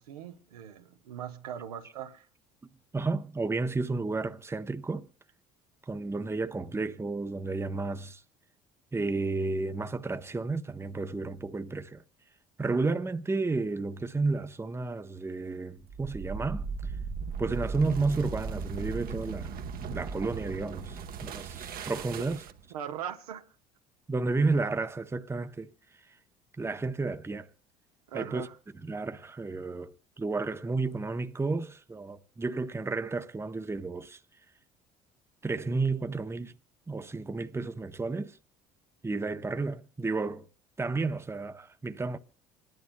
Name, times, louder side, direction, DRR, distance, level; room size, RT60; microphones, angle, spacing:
voice 1, 0.0-2.3 22.7-23.4 28.1-28.6, right 9 dB, 85° right, 1.1 m, -40 dB
voice 2, 2.9-5.1 5.9-8.2 8.9-12.0 12.6-16.9 17.4-19.6 19.9-22.4 24.1-25.7 26.6-27.5 28.1-28.5 28.8-34.2 35.4-36.5 36.9-38.4 39.0-40.5 40.8-42.2, right 3 dB, 15° right, 0.8 m, -32 dB
sound 1, 15.8-22.7, right 5 dB, 50° right, 1.0 m, -37 dB
27.0 x 11.0 x 2.2 m
hypercardioid pair, 65°, 19 cm